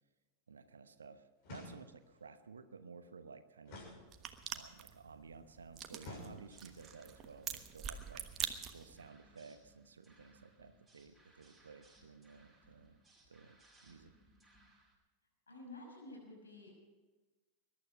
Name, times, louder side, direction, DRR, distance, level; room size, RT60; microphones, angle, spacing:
voice 1, 0.5-3.9 4.5-8.2 8.7-13.0 13.3-14.1, right 5 dB, 70° right, 11 dB, 1.0 m, -55 dB
sound 1, 1.4-2.2 3.6-4.6 6.0-6.8, left 2 dB, 45° left, 6.7 m, -52 dB
sound 2, 4.1-9.1, right 9 dB, 30° right, 1.3 m, -45 dB
sound 3, 6.5-14.9, right 1 dB, ahead, 6.7 m, -67 dB
voice 2, 15.5-16.7, left 2 dB, 75° left, 0 dB, 6.1 m, -51 dB
21.5 x 12.0 x 5.6 m, 1.2 s
figure-of-eight pair, 90°, 0 cm